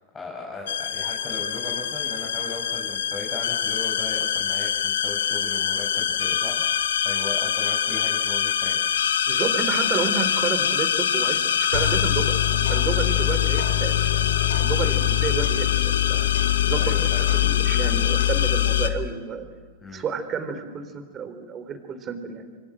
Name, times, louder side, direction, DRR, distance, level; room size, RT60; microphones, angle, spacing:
voice 1, 0.1-6.7 7.0-8.8 14.7-15.0 16.8-17.3 19.8-20.0, left 3 dB, 20° left, -2 dB, 5.6 m, -37 dB
sound 1, 0.7-18.9, left 10 dB, 75° left, 1.8 m, -23 dB
voice 2, 9.3-16.3 16.7-19.4 19.9-22.4, right 6 dB, 30° right, 9 dB, 4.0 m, -31 dB
27.5 x 24.5 x 7.8 m, 1.5 s
hypercardioid pair, 100°, 0 cm